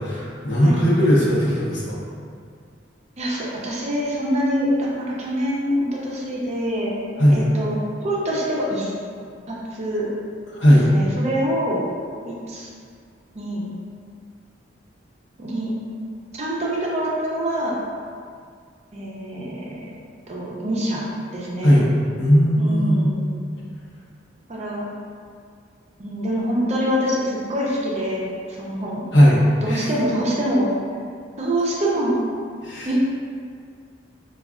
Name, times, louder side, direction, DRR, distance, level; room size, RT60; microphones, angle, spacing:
voice 1, 0.0-2.0 7.2-7.4 10.5-10.9 21.6-21.9 22.2-23.1 29.1-29.9 32.6-32.9, equal, 70° left, -6 dB, 0.8 m, -17 dB
voice 2, 3.2-6.9 7.3-8.9 9.5-10.1 10.7-11.8 12.3-12.7 13.3-13.7 15.4-15.7 16.3-17.8 18.9-19.7 20.3-21.0 21.3-21.8 22.6-23.3 24.5-24.9 26.0-28.2 28.5-29.0 29.6-30.7 31.4-32.2 32.9-33.0, equal, 35° right, -4 dB, 0.5 m, -25 dB
4.5 x 2.3 x 2.4 m, 2.2 s
head